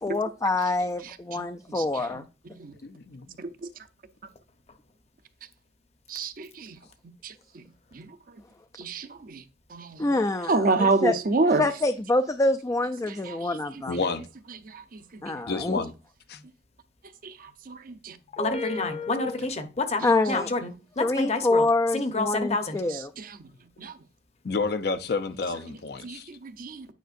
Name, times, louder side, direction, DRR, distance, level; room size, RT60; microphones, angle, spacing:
voice 1, 0.0-2.2 10.0-11.1 11.5-14.0 15.2-15.8 20.0-20.5 21.0-23.1, left 2 dB, 20° left, 0.3 m, -26 dB
voice 2, 2.8-3.4 13.9-14.3 15.5-15.9 16.3-16.4 24.4-26.3, left 4 dB, 65° left, 0.6 m, -30 dB
voice 3, 6.1-6.7 7.2-7.3 8.0-8.1 8.8-9.4 9.7-10.0 10.5-11.6 15.3-15.4 17.7-18.1 23.8-23.9 26.0-26.9, right 3 dB, 50° right, 0.6 m, -27 dB
voice 4, 18.3-20.0 20.3-21.7 21.9-22.8, left 3 dB, 40° left, 0.9 m, -28 dB
9.2 x 5.4 x 2.5 m
head